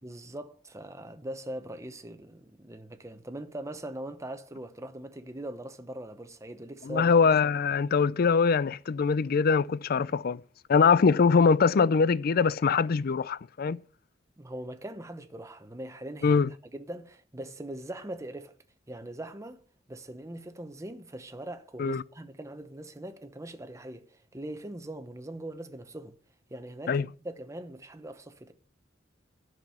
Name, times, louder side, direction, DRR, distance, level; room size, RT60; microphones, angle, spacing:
voice 1, 0.0-7.1 14.4-16.4 16.7-18.5 18.9-19.6 19.9-26.2 26.5-28.5, right 1 dB, 15° right, 0.8 m, -41 dB
voice 2, 6.9-10.4 10.7-13.8 16.2-16.5 21.8-22.0 26.9-27.1, left 5 dB, 55° left, 0.4 m, -23 dB
10.5 x 6.0 x 7.0 m
head